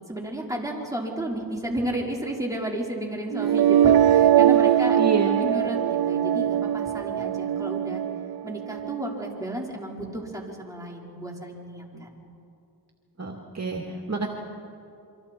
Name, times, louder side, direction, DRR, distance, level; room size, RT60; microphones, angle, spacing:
voice 1, 0.1-5.0 5.4-8.0 8.4-12.2, right 1 dB, 10° right, -2 dB, 4.9 m, -32 dB
sound 1, 3.3-9.3, right 10 dB, 65° right, 0.6 m, -21 dB
voice 2, 4.8-5.5 11.9-12.1 13.2-14.3, right 4 dB, 40° right, 1 dB, 2.3 m, -29 dB
28.0 x 25.0 x 4.6 m, 2.6 s
cardioid pair, 55°, 41 cm